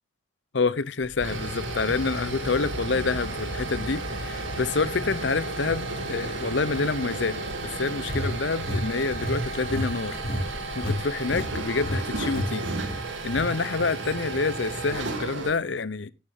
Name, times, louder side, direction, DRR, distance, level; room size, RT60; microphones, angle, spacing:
voice 1, 0.5-5.8 6.1-10.2 10.7-12.7 13.2-16.1, left 4 dB, 65° left, 0.7 m, -27 dB
sound 1, 1.0-15.5, right 2 dB, 75° right, 2.7 m, -33 dB
sound 2, 8.1-11.0 11.3-11.5 11.8-12.0 12.3-12.5 12.8-13.5, left 1 dB, 45° left, 2.8 m, -30 dB
12.5 x 10.5 x 3.6 m
head